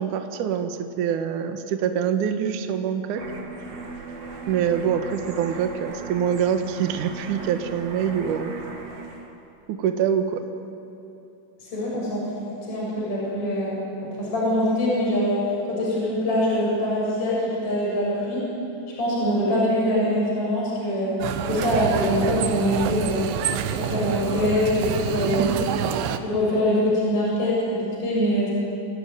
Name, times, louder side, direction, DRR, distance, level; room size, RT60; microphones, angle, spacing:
voice 1, 0.0-3.3 4.5-8.5 9.7-10.4 25.4-25.5, right 8 dB, 65° right, 6 dB, 2.2 m, -25 dB
sound 1, 3.2-9.3, right 3 dB, 45° right, 2.7 m, -38 dB
voice 2, 11.6-12.3 12.6-15.4 15.7-18.4 19.0-21.2 21.5-23.3 23.7-25.4 26.2-28.5, equal, 30° left, -5 dB, 7.9 m, -23 dB
sound 2, 21.2-26.2, right 9 dB, 80° right, 3.2 m, -27 dB
27.5 x 17.5 x 9.2 m, 2.8 s
omnidirectional pair, 5.1 m